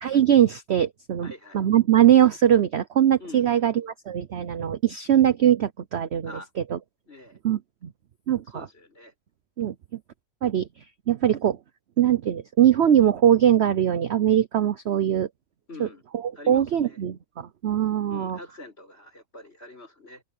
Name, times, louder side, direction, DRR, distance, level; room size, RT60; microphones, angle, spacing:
voice 1, 0.0-1.3 1.5-6.3 6.7-6.8 7.4-7.9 8.3-8.7 9.6-9.7 10.4-10.7 11.1-11.6 12.0-15.3 15.8-15.9 16.5-18.4, right 10 dB, 55° right, 0.8 m, -21 dB
voice 2, 1.2-1.6 3.2-3.9 6.2-6.5 7.0-7.4 8.3-9.1 15.7-16.0 16.4-17.0 18.1-20.2, left 2 dB, 40° left, 7.7 m, -45 dB
open air
omnidirectional pair, 1.7 m